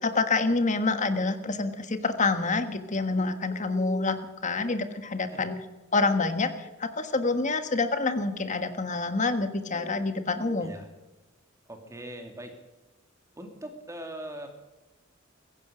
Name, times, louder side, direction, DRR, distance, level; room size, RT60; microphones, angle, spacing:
voice 1, 0.0-5.6 5.9-10.7, left 3 dB, 35° left, 9 dB, 1.5 m, -27 dB
voice 2, 11.7-12.5 13.4-14.5, right 1 dB, 15° right, 4 dB, 2.5 m, -41 dB
16.0 x 15.5 x 5.1 m, 1.1 s
head